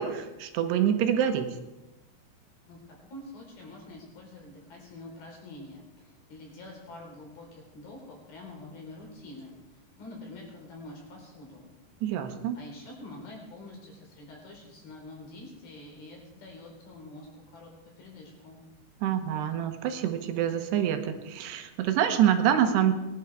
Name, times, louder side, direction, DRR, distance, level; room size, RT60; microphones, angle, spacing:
voice 1, 0.0-1.5 12.0-12.6 19.0-22.9, right 10 dB, 80° right, 7 dB, 3.2 m, -26 dB
voice 2, 2.7-11.7 12.5-18.6, left 2 dB, 60° left, -1 dB, 6.0 m, -46 dB
22.0 x 11.0 x 4.7 m, 1.0 s
omnidirectional pair, 4.9 m